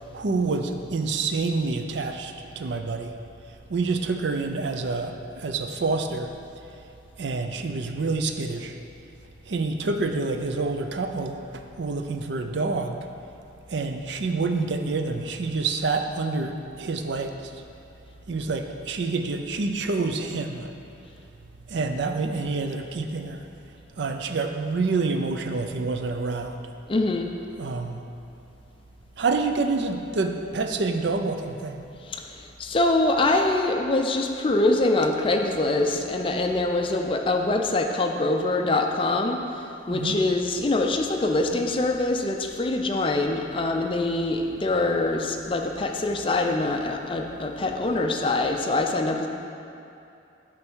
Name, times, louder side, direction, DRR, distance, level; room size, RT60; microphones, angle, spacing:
voice 1, 0.1-3.1 3.7-6.3 7.2-8.8 9.5-13.1 13.7-17.5 18.3-20.7 21.7-23.4 24.0-26.7 27.6-28.0 29.2-31.8 39.9-40.2, right 3 dB, 65° right, 6 dB, 0.5 m, -27 dB
voice 2, 26.9-27.3 32.0-49.3, left 2 dB, 25° left, 3 dB, 0.4 m, -24 dB
8.7 x 3.4 x 6.2 m, 2.7 s
head